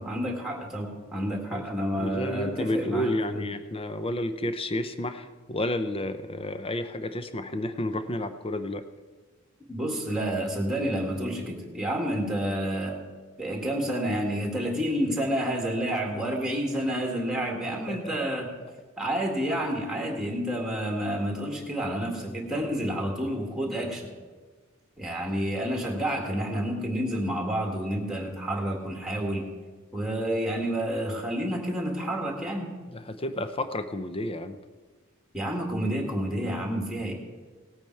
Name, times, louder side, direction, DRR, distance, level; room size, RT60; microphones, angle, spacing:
voice 1, 0.0-3.4 9.7-12.9 13.4-18.5 19.0-24.1 25.0-29.4 29.9-32.7 35.3-37.1, equal, ahead, 0 dB, 1.9 m, -29 dB
voice 2, 2.0-8.9 17.7-18.2 32.9-34.6, left 1 dB, 25° left, 10 dB, 0.6 m, -31 dB
18.0 x 8.8 x 4.6 m, 1.4 s
head